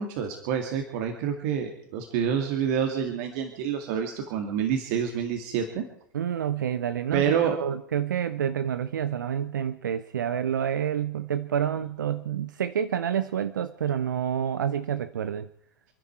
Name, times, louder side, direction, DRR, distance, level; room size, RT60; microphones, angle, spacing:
voice 1, 0.0-5.9 7.1-7.6, right 8 dB, 55° right, 4 dB, 2.3 m, -27 dB
voice 2, 6.1-15.5, right 9 dB, 75° right, 13 dB, 0.7 m, -28 dB
29.0 x 10.5 x 4.7 m, 0.67 s
figure-of-eight pair, 90°, 10 cm